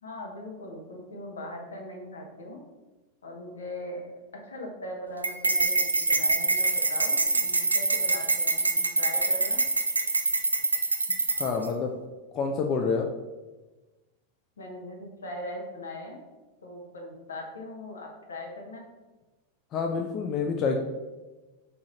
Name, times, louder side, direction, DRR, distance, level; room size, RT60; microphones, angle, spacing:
voice 1, 0.0-2.6 3.2-4.0 4.5-9.6 14.6-16.2 16.6-18.9, left 1 dB, 70° left, 1 dB, 0.8 m, -40 dB
sound 1, 5.2-11.7, right 3 dB, 80° right, 0.3 m, -25 dB
voice 2, 11.4-11.9 12.3-13.1 19.7-20.8, left 5 dB, 35° left, 2 dB, 0.4 m, -27 dB
3.6 x 2.8 x 4.2 m, 1.2 s
figure-of-eight pair, 90°, 0 cm